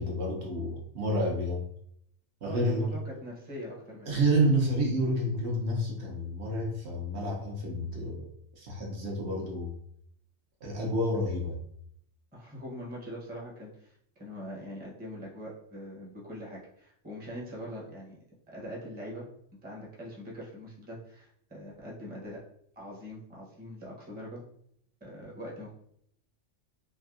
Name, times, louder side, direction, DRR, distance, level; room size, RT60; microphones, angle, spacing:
voice 1, 0.0-1.6 2.4-2.9 4.0-8.3 8.6-9.7 10.6-11.6, right 1 dB, 60° right, -2 dB, 1.0 m, -29 dB
voice 2, 2.4-4.1 12.3-18.2 18.5-19.2 19.6-22.4 22.8-24.4 25.0-25.7, equal, 10° right, -4 dB, 0.6 m, -42 dB
3.4 x 2.6 x 2.4 m, 0.69 s
omnidirectional pair, 1.3 m